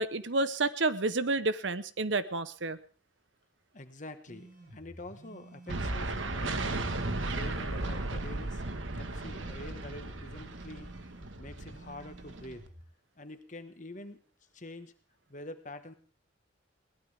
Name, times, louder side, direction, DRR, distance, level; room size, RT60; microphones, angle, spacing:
voice 1, 0.0-2.8, right 3 dB, 70° right, 13 dB, 1.0 m, -30 dB
voice 2, 3.7-6.9 7.3-8.6 9.0-10.9 11.4-12.6 13.2-14.2 14.5-14.9 15.3-15.9, left 1 dB, 40° left, 8 dB, 1.6 m, -46 dB
sound 1, 4.3-12.8, right 1 dB, 50° right, 5.8 m, -52 dB
sound 2, 5.7-12.7, right 2 dB, 85° right, 1.6 m, -36 dB
21.5 x 18.5 x 3.6 m, 0.38 s
head